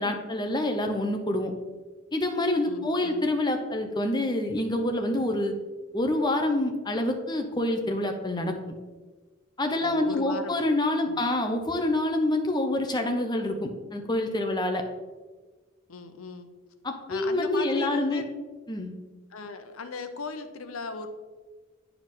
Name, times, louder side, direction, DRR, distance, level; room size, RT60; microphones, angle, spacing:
voice 1, 0.0-1.5 2.1-5.5 5.9-8.7 9.6-14.8 16.8-18.2 18.7-18.9, left 1 dB, 20° left, 4 dB, 0.7 m, -27 dB
voice 2, 2.6-3.2 9.8-10.6 11.1-11.3 14.9-15.1 15.9-16.5 17.1-18.3 19.3-21.1, left 4 dB, 75° left, 8 dB, 0.7 m, -38 dB
9.1 x 4.7 x 3.8 m, 1.3 s
head